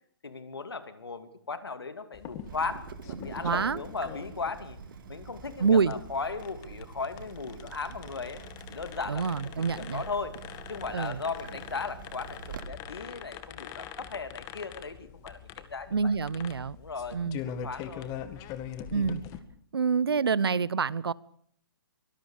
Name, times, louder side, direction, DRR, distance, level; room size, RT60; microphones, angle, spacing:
voice 1, 0.2-4.8 5.1-8.4 8.7-10.4 10.7-16.1 16.8-18.1, left 4 dB, 90° left, 2.8 m, -37 dB
sound 1, 2.1-19.4, left 9 dB, 25° left, 2.1 m, -44 dB
Water tap faucet / Drip, 2.5-12.6, right 7 dB, 60° right, 2.7 m, -46 dB
voice 2, 3.4-3.8 5.6-5.9 9.1-10.0 10.9-11.2 15.9-16.8 17.1-17.4 18.9-19.2 19.7-21.1, right 5 dB, 85° right, 1.0 m, -26 dB
24.5 x 20.0 x 6.8 m
hypercardioid pair, 135°, 12 cm